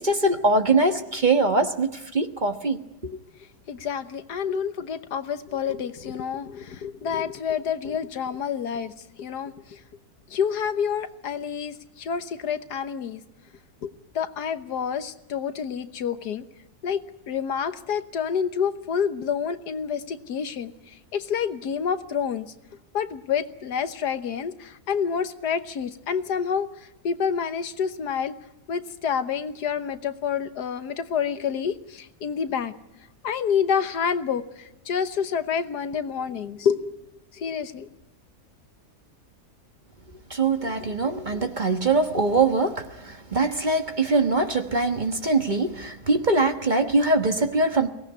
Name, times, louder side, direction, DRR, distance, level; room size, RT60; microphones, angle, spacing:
voice 1, 0.0-2.8 4.5-4.6 40.3-47.9, right 3 dB, 30° right, 6 dB, 1.3 m, -22 dB
voice 2, 3.7-9.8 10.3-13.2 13.8-16.4 16.8-22.5 22.9-26.7 27.0-28.3 28.7-32.7 33.2-37.0 37.3-37.9, left 7 dB, 85° left, 10 dB, 1.7 m, -28 dB
23.0 x 18.0 x 9.6 m, 0.93 s
omnidirectional pair, 1.7 m